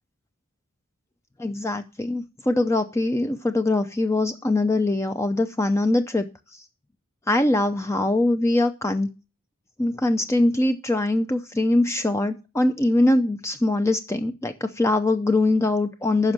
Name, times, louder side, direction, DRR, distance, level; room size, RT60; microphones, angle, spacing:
voice 1, 1.4-6.3 6.5-6.6 7.3-9.1 9.8-16.3, left 2 dB, 15° left, 8 dB, 0.5 m, -22 dB
9.9 x 6.2 x 7.4 m, 0.31 s
head